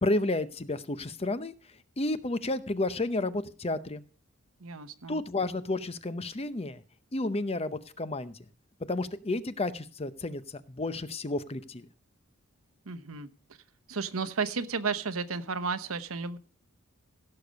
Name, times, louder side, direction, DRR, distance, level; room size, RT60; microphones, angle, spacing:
voice 1, 0.0-1.5 2.0-4.0 5.1-6.8 7.1-8.4 8.9-11.9, left 2 dB, 30° left, 13 dB, 0.7 m, -31 dB
voice 2, 4.6-5.2 12.9-13.3 13.9-16.4, right 5 dB, 80° right, 13 dB, 1.0 m, -33 dB
16.5 x 6.9 x 5.2 m, 0.39 s
head